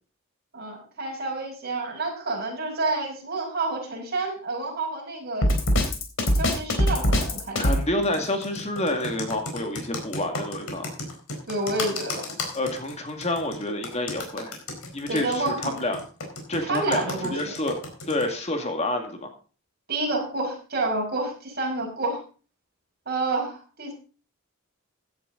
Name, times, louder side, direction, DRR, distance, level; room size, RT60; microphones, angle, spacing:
voice 1, 0.5-5.5 6.3-7.7 11.5-12.2 15.1-15.7 16.6-17.5 19.9-22.2 23.1-23.9, right 2 dB, 50° right, 0 dB, 5.9 m, -29 dB
Drum kit, 5.4-7.8, equal, 60° left, 3.5 m, -21 dB
voice 2, 7.6-10.9 12.5-14.5 14.9-16.0 16.5-17.8 18.1-19.3, left 1 dB, 30° left, 4 dB, 2.2 m, -28 dB
Computer keyboard, 8.0-18.3, left 2 dB, 90° left, 4.5 m, -34 dB
16.0 x 11.0 x 3.9 m, 0.37 s
head